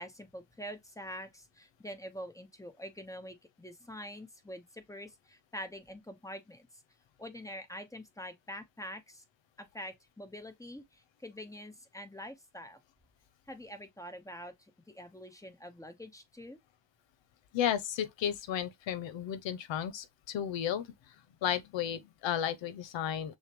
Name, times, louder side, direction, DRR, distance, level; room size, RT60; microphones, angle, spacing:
voice 1, 0.0-6.7 7.2-9.2 9.6-12.8 13.5-14.5 14.9-16.6, equal, 5° left, 1.0 m, -45 dB
voice 2, 17.5-20.9 21.4-23.4, left 9 dB, 80° left, 0.7 m, -33 dB
6.4 x 2.2 x 3.0 m
cardioid pair, 80°, 44 cm